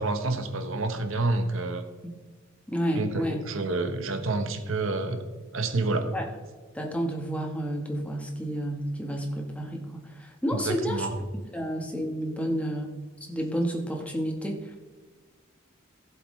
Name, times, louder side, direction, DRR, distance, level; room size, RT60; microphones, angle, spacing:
voice 1, 0.0-1.8 2.9-5.2 5.5-6.1 10.5-11.1, right 2 dB, 75° right, 7 dB, 1.1 m, -28 dB
voice 2, 2.7-3.4 6.1-6.3 6.7-11.1 11.5-14.8, equal, 5° left, 1 dB, 1.2 m, -31 dB
14.5 x 7.9 x 3.2 m, 1.4 s
head